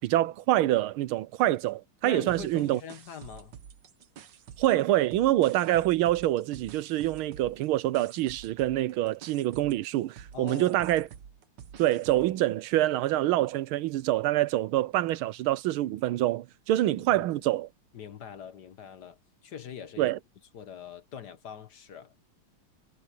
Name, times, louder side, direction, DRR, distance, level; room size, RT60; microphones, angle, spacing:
voice 1, 0.0-2.8 4.6-11.1 11.8-17.7 20.0-20.2, right 14 dB, 85° right, 1.5 m, -26 dB
voice 2, 2.0-3.6 10.3-10.8 17.1-17.2 17.9-20.1 20.5-22.1, left 8 dB, 55° left, 1.5 m, -43 dB
sound 1, 2.3-4.8 5.1-12.4, right 8 dB, 60° right, 1.7 m, -49 dB
omnidirectional pair, 2.3 m